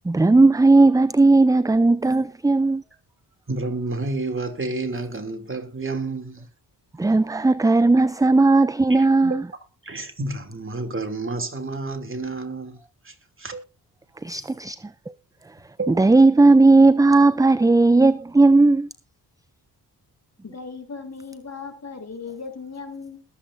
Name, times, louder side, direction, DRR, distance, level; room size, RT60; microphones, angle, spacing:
voice 1, 0.1-2.8 7.0-9.4 14.2-14.8 15.9-18.9, right 3 dB, 10° right, 0.5 m, -16 dB
voice 2, 3.5-6.5 8.9-9.4 9.8-12.8 13.0-13.7 15.8-16.0, right 3 dB, 30° right, 2.9 m, -30 dB
voice 3, 20.4-23.2, left 5 dB, 40° left, 3.7 m, -37 dB
21.0 x 8.4 x 2.7 m
supercardioid pair, 50°, 41 cm